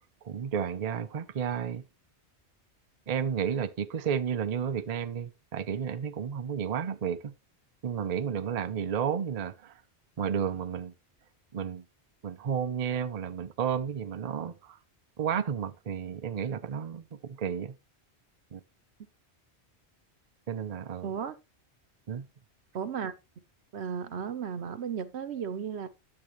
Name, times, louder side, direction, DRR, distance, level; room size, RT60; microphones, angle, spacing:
voice 1, 0.2-1.8 3.1-7.3 7.8-9.7 10.2-10.9 11.5-11.8 12.2-14.8 15.2-17.7 18.5-18.6 20.5-21.1 22.1-22.3, right 7 dB, 45° right, 0.6 m, -32 dB
voice 2, 21.0-21.3 22.7-23.1 23.7-25.9, right 7 dB, 75° right, 1.2 m, -34 dB
10.5 x 7.6 x 3.1 m
omnidirectional pair, 1.1 m